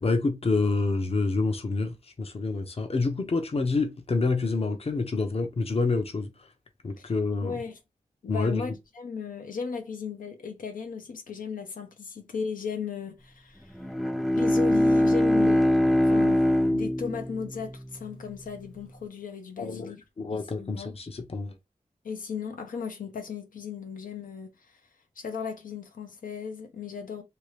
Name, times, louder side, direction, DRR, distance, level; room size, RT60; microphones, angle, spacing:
voice 1, 0.0-6.3 6.8-7.6 8.3-8.6 19.6-19.9 20.2-21.5, left 3 dB, 45° left, 0.7 m, -27 dB
voice 2, 7.4-7.8 8.2-13.8 14.4-20.0 20.3-20.9 22.0-24.8 25.2-27.2, left 6 dB, 90° left, 0.6 m, -36 dB
Bowed string instrument, 13.7-18.3, left 1 dB, ahead, 0.3 m, -23 dB
2.8 x 2.4 x 3.2 m
cardioid pair, 50°, 14 cm